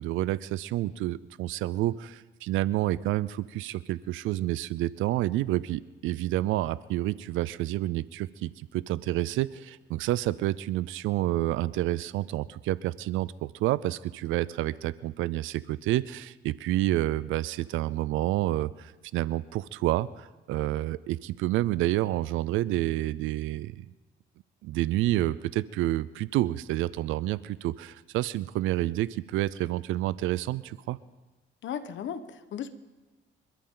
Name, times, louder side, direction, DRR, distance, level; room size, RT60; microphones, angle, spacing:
voice 1, 0.0-23.9 24.6-31.0, right 15 dB, 90° right, 19 dB, 0.4 m, -29 dB
voice 2, 31.6-32.7, left 8 dB, 70° left, 11 dB, 1.2 m, -36 dB
26.5 x 13.0 x 3.9 m, 1.2 s
cardioid pair, 90°, 20 cm